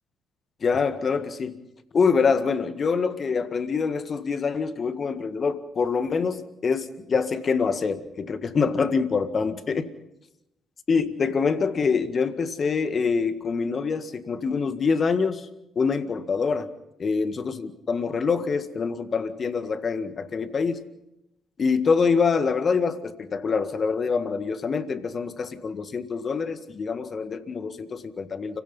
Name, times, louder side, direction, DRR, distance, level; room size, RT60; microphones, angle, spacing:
voice 1, 0.6-1.6 1.9-9.9 10.9-15.5 15.8-16.7 17.0-20.9 21.6-28.6, left 5 dB, 50° left, 10 dB, 1.8 m, -25 dB
30.0 x 16.0 x 5.5 m, 0.87 s
hypercardioid pair, 45°, 0 cm